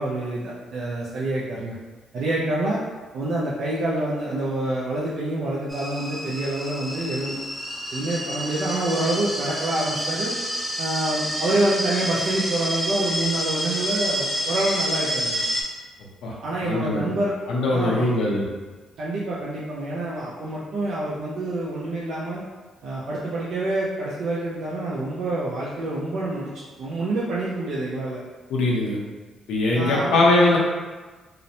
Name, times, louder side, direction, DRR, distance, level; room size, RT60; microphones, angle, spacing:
voice 1, 0.0-1.8 2.1-2.8 3.1-7.4 7.9-10.3 10.8-15.4 16.4-17.3 17.7-18.1 19.0-22.4 22.8-28.2 29.7-30.2, right 2 dB, 65° right, -7 dB, 0.5 m, -27 dB
sound 1, 5.7-15.6, equal, 10° right, 0.5 m, -28 dB
voice 2, 16.6-17.1 17.5-18.4 28.5-29.0 29.5-30.6, left 2 dB, 80° left, -3 dB, 0.6 m, -21 dB
2.9 x 2.0 x 2.6 m, 1.3 s
cardioid pair, 90°, 0 cm